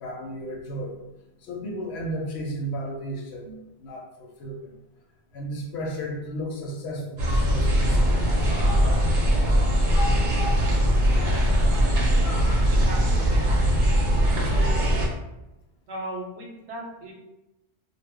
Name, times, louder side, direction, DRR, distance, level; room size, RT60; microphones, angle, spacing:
voice 1, 0.0-1.0 1.4-4.7 5.3-8.7, right 1 dB, 75° left, 0 dB, 0.8 m, -34 dB
sound 1, 7.2-15.1, equal, 50° right, 0.7 m, -21 dB
voice 2, 12.7-13.5 14.4-15.1 15.9-17.1, right 1 dB, 80° right, -1 dB, 1.0 m, -37 dB
2.1 x 2.0 x 3.5 m, 0.97 s
omnidirectional pair, 1.1 m